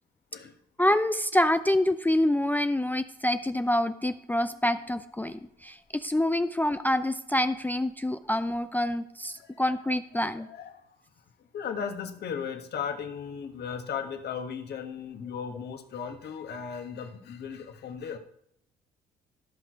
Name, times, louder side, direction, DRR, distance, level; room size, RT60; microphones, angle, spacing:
voice 1, 0.8-10.5, left 1 dB, 10° left, 10 dB, 0.5 m, -26 dB
voice 2, 9.3-9.7 10.1-11.0 11.4-18.2, left 7 dB, 55° left, 6 dB, 1.5 m, -37 dB
13.5 x 5.9 x 4.6 m, 0.75 s
hypercardioid pair, 50°, 21 cm